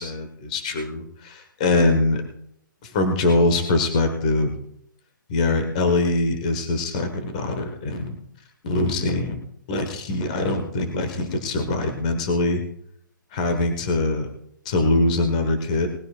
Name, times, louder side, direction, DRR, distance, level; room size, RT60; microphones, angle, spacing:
voice 1, 0.0-2.2 2.8-4.5 5.3-8.1 8.6-9.4 9.7-12.6 13.3-14.3 14.6-15.9, left 2 dB, 20° left, 6 dB, 1.3 m, -23 dB
19.5 x 15.0 x 2.4 m, 0.71 s
hypercardioid pair, 180°, 11 cm